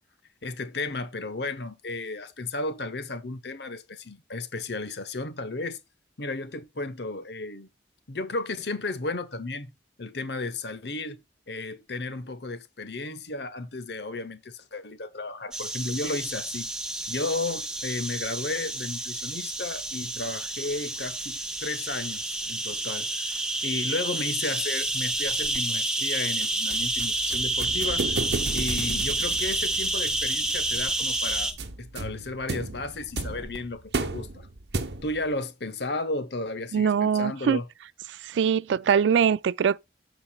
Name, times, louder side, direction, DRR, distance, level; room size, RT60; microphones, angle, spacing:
voice 1, 0.4-5.8 6.2-7.7 8.1-9.7 10.0-11.2 11.5-16.7 17.1-23.2 23.6-28.2 28.5-31.5 31.8-34.5 35.0-37.7, left 2 dB, 65° left, 1.0 m, -33 dB
sound 1, 15.5-31.5, right 2 dB, 5° right, 1.1 m, -29 dB
sound 2, 24.7-26.7 27.4-29.3 30.0-32.0 32.7-34.1, equal, 20° left, 1.7 m, -51 dB
sound 3, 26.4-35.3, right 3 dB, 60° right, 0.9 m, -34 dB
voice 2, 36.7-37.6 38.1-39.8, right 7 dB, 80° right, 0.3 m, -23 dB
14.5 x 5.1 x 2.3 m
head